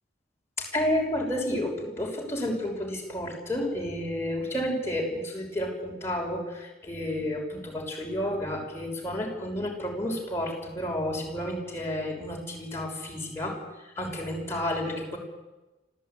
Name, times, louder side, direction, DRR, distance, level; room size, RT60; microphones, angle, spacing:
voice 1, 0.6-13.6 14.0-15.2, left 1 dB, 15° left, -1 dB, 6.3 m, -31 dB
26.0 x 16.0 x 9.4 m, 1.1 s
head